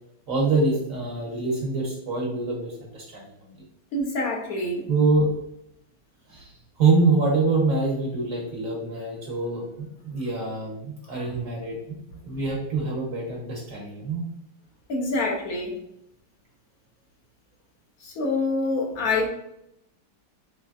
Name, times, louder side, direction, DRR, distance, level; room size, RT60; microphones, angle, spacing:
voice 1, 0.3-3.5 4.9-5.3 6.3-14.3, right 3 dB, 55° right, -2 dB, 1.0 m, -25 dB
voice 2, 3.9-4.9 14.9-15.7 18.0-19.3, left 2 dB, 70° left, 0 dB, 0.9 m, -26 dB
4.3 x 3.1 x 2.3 m, 0.81 s
omnidirectional pair, 2.1 m